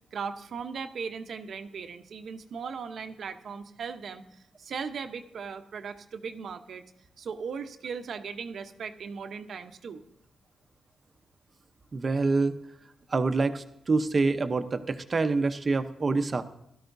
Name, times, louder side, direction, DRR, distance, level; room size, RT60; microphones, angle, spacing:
voice 1, 0.1-4.2 4.6-6.8 7.2-10.0, right 6 dB, 60° right, 8 dB, 0.8 m, -38 dB
voice 2, 11.9-12.5 13.1-16.4, right 3 dB, 30° right, 9 dB, 0.8 m, -26 dB
17.5 x 12.5 x 2.6 m, 0.81 s
wide cardioid pair, 130°, 0 cm